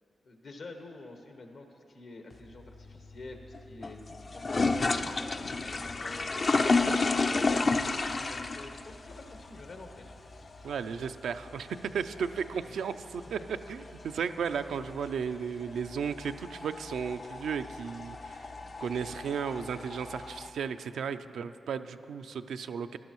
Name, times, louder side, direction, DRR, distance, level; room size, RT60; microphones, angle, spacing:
voice 1, 0.2-4.0 4.3-6.3 6.9-10.1, left 2 dB, 75° left, 3 dB, 1.1 m, -48 dB
sound 1, 2.3-20.5, left 3 dB, 50° left, 0.5 m, -33 dB
voice 2, 10.6-18.5 18.8-23.0, right 6 dB, 80° right, 10 dB, 0.3 m, -35 dB
14.5 x 11.5 x 3.0 m, 3.0 s
supercardioid pair, 40°, 0 cm